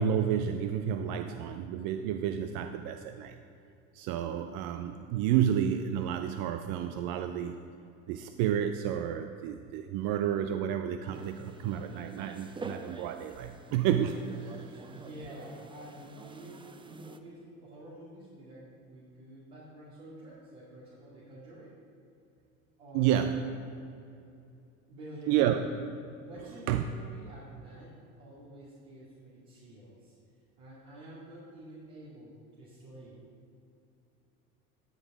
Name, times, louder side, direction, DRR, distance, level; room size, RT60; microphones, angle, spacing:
voice 1, 0.0-3.4 3.9-7.5 8.1-14.8 22.9-23.4 25.3-25.6 26.7-26.8, right 9 dB, 50° right, 7 dB, 0.6 m, -30 dB
sound 1, 11.1-17.2, right 3 dB, 10° right, 0.5 m, -47 dB
voice 2, 14.8-21.8 22.8-23.6 24.9-25.7 26.2-30.1 30.6-33.2, right 1 dB, 75° right, -8 dB, 2.4 m, -49 dB
13.0 x 5.4 x 4.9 m, 2.6 s
hypercardioid pair, 75°, 44 cm